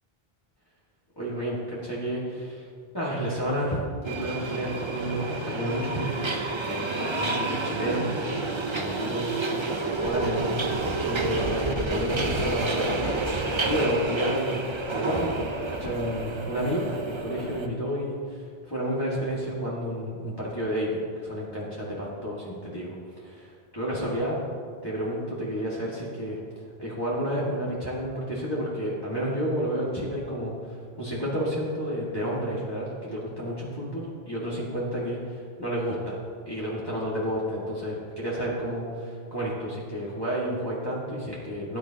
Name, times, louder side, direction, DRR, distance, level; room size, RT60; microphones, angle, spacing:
voice 1, 1.2-2.7 2.9-8.5 8.7-9.3 9.8-10.5 10.8-13.1 13.7-14.6 14.9-24.4 24.8-26.4 26.8-35.2 35.6-36.2 36.4-41.8, equal, 25° left, -8 dB, 2.2 m, -31 dB
Subway metro underground, 4.0-17.7, right 3 dB, 30° right, 0.8 m, -29 dB
18.0 x 10.5 x 2.9 m, 2.1 s
omnidirectional pair, 1.0 m